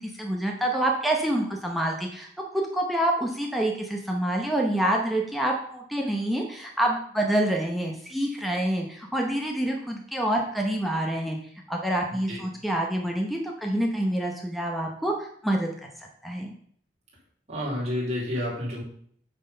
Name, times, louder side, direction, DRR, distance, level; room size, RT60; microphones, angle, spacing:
voice 1, 0.2-2.3 2.5-11.4 11.7-15.7 16.2-16.5, right 1 dB, ahead, 0 dB, 0.9 m, -27 dB
voice 2, 17.5-18.8, left 1 dB, 40° right, -4 dB, 3.2 m, -29 dB
8.8 x 4.2 x 5.5 m, 0.62 s
head